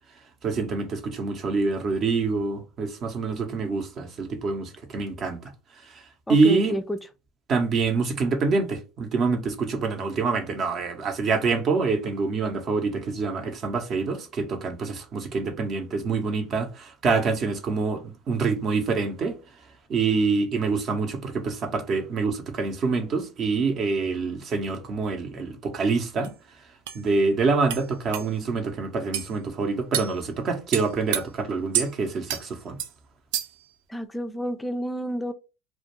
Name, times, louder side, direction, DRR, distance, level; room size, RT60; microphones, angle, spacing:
voice 1, 0.4-5.4 5.9-6.0 6.3-6.8 7.5-19.4 19.9-26.3 26.9-32.8, right 4 dB, 50° right, 0.7 m, -26 dB
voice 2, 6.3-7.0 33.9-35.3, equal, 10° left, 0.3 m, -30 dB
sound 1, 26.2-26.3 26.9-27.0 27.7-27.8 28.1-28.3 29.1-29.3 29.9-30.1 30.7-31.2 31.7-31.9 32.3-32.4 32.8-32.9 33.3-33.6, right 10 dB, 80° right, 0.3 m, -28 dB
2.3 x 2.2 x 3.0 m
hypercardioid pair, 80°, 0 cm